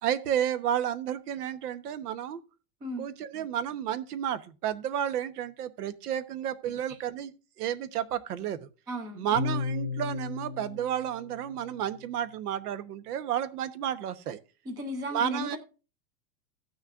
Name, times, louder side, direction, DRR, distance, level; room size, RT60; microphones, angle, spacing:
voice 1, 0.0-2.4 3.0-7.3 7.6-8.7 9.1-14.4 15.1-15.6, right 10 dB, 75° right, 1.1 m, -31 dB
voice 2, 8.9-9.3 14.7-15.6, equal, 10° right, 0.5 m, -35 dB
sound 1, 9.3-11.9, left 4 dB, 30° right, 1.9 m, -35 dB
17.0 x 6.4 x 2.5 m
supercardioid pair, 175°, 46 cm